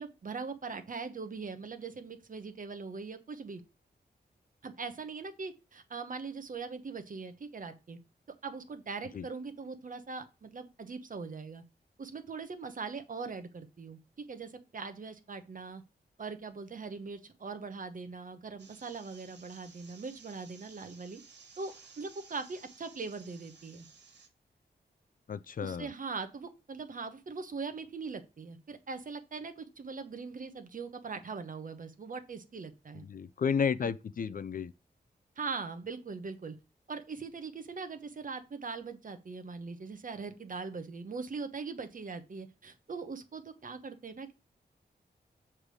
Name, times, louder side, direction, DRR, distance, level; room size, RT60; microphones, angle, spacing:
voice 1, 0.0-3.6 4.6-8.0 8.4-11.6 12.0-15.8 16.2-21.2 21.6-23.9 25.6-33.0 33.8-33.9 35.4-36.5 36.9-44.3, right 4 dB, 50° right, 1.1 m, -41 dB
sound 1, 18.6-24.3, right 5 dB, 85° right, 1.9 m, -56 dB
voice 2, 25.3-25.9 33.1-34.7, left 6 dB, 50° left, 0.4 m, -32 dB
7.3 x 3.4 x 6.3 m
wide cardioid pair, 115°, 18 cm